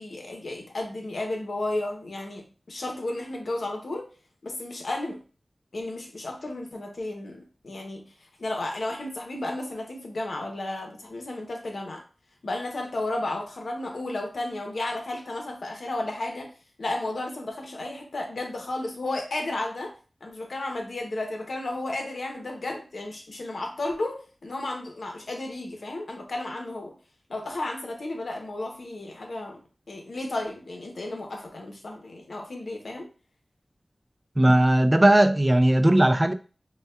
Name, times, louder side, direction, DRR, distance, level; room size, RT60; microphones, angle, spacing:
voice 1, 0.0-4.1 4.4-5.2 5.7-8.1 8.4-12.0 12.4-16.5 16.8-19.9 20.2-26.9 27.3-33.1, left 2 dB, 90° left, 0.8 m, -33 dB
voice 2, 34.4-36.3, right 1 dB, 25° right, 0.3 m, -18 dB
5.2 x 2.2 x 2.3 m
wide cardioid pair, 60°, 0 cm